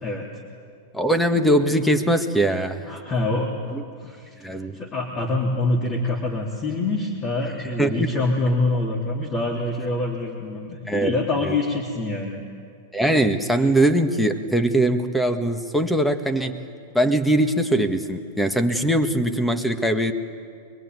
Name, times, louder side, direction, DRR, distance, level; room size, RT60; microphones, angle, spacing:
voice 1, 0.9-2.9 3.7-3.8 4.4-4.8 7.8-8.1 10.9-11.1 11.4-11.5 12.9-16.6 16.9-20.1, right 1 dB, 5° left, 7 dB, 1.7 m, -21 dB
voice 2, 2.9-3.5 4.0-4.3 4.7-12.4, left 2 dB, 30° left, -1 dB, 3.4 m, -25 dB
25.0 x 22.0 x 9.5 m, 2.3 s
hypercardioid pair, 125°, 0 cm